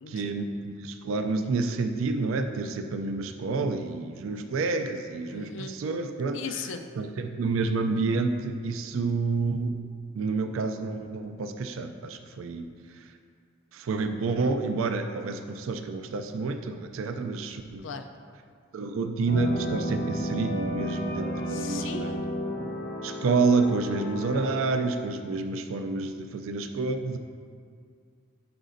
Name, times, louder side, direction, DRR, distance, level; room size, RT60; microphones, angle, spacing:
voice 1, 0.1-6.4 7.0-9.7 10.2-12.7 13.7-17.9 18.7-22.2 23.0-27.2, right 3 dB, 80° right, 7 dB, 0.4 m, -29 dB
voice 2, 5.3-5.8 6.3-6.8 17.8-18.1 21.5-22.3, left 5 dB, 65° left, 7 dB, 0.5 m, -37 dB
sound 1, 19.3-24.7, equal, 40° left, 0.8 m, -33 dB
10.5 x 4.9 x 2.6 m, 2.1 s
head